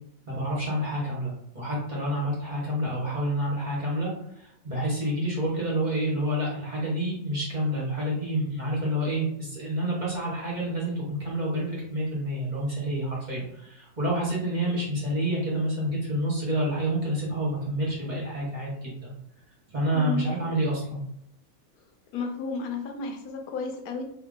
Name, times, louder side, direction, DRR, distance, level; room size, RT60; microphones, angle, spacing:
voice 1, 0.2-19.1 19.7-21.0, right 1 dB, 30° right, -5 dB, 1.1 m, -28 dB
voice 2, 19.9-20.3 22.1-24.0, left 4 dB, 80° left, 3 dB, 1.1 m, -32 dB
2.8 x 2.5 x 3.6 m, 0.74 s
omnidirectional pair, 1.6 m